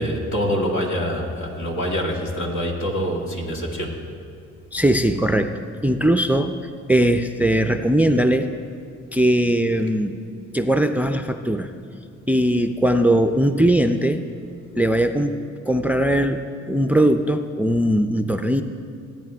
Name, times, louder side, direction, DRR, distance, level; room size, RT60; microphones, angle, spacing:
voice 1, 0.0-4.0, equal, 70° left, -1 dB, 2.2 m, -25 dB
voice 2, 4.7-5.5 5.8-6.5 6.9-8.5 9.1-10.2 10.5-11.7 12.3-14.2 14.8-15.4 15.7-18.6, right 1 dB, 5° right, 8 dB, 0.4 m, -19 dB
19.0 x 9.1 x 3.4 m, 2.5 s
cardioid pair, 90°, 30 cm